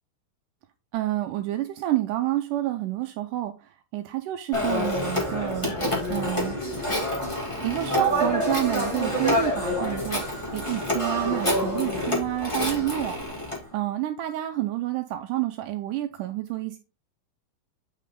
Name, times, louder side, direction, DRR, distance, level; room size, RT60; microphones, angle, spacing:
voice 1, 0.9-5.7 6.1-6.6 7.6-16.8, right 15 dB, 80° right, 1.9 m, -29 dB
Telephone, 4.5-13.6, left 1 dB, 10° left, 1.5 m, -27 dB
8.4 x 5.4 x 3.7 m
omnidirectional pair, 4.3 m